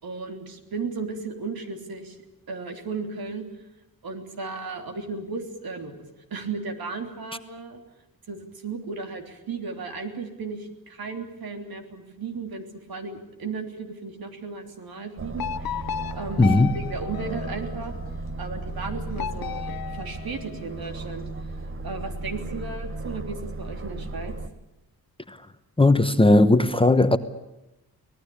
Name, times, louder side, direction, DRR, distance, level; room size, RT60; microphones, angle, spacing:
voice 1, 0.0-2.2 2.5-3.4 4.0-5.9 6.3-7.8 8.3-17.9 18.4-21.5 21.8-24.3, right 4 dB, 70° right, 3.3 m, -35 dB
Aircraft, 15.2-24.5, right 2 dB, 35° right, 1.4 m, -35 dB
sound 1, 15.4-18.1 19.2-20.9, left 10 dB, 70° left, 0.9 m, -35 dB
voice 2, 16.4-16.7 25.3-25.4 25.8-27.2, left 2 dB, 15° left, 1.0 m, -17 dB
25.0 x 18.5 x 8.6 m
wide cardioid pair, 115°, 37 cm